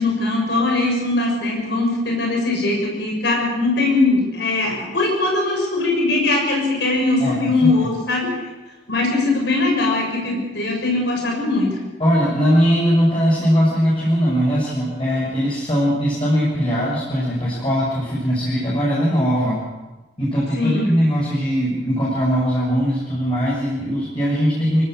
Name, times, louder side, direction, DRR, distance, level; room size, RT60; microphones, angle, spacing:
voice 1, 0.0-8.5 8.9-11.8 20.6-20.9, left 2 dB, 70° left, 1 dB, 6.4 m, -20 dB
voice 2, 7.2-7.9 12.0-19.6 20.2-24.9, equal, 30° left, -6 dB, 6.9 m, -20 dB
25.5 x 18.5 x 6.6 m, 1.2 s
head